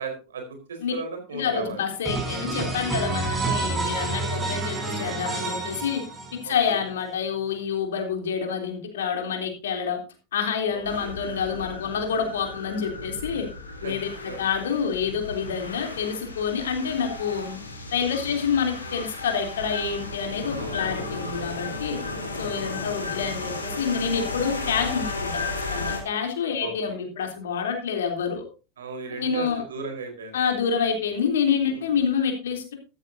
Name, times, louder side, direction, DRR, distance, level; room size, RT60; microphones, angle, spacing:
voice 1, 0.0-1.8 3.5-3.7 6.4-6.8 10.7-11.1 13.8-13.9 14.2-14.4 15.8-15.9 18.2-18.4 20.6-21.0 21.9-22.2 26.6-27.0 28.8-30.4 31.7-31.9, right 4 dB, 75° right, 4 dB, 4.3 m, -36 dB
voice 2, 1.3-6.0 6.4-10.0 10.3-13.5 13.8-17.6 17.9-22.0 22.4-25.4 25.7-28.4 29.2-29.6 30.3-32.7, left 6 dB, 70° left, 3 dB, 3.4 m, -27 dB
sound 1, 2.0-6.6, right 3 dB, 20° right, 7.1 m, -29 dB
sound 2, 10.8-26.0, left 3 dB, 85° left, 3.4 m, -34 dB
13.5 x 13.5 x 2.8 m, 0.32 s
figure-of-eight pair, 85°, 0 cm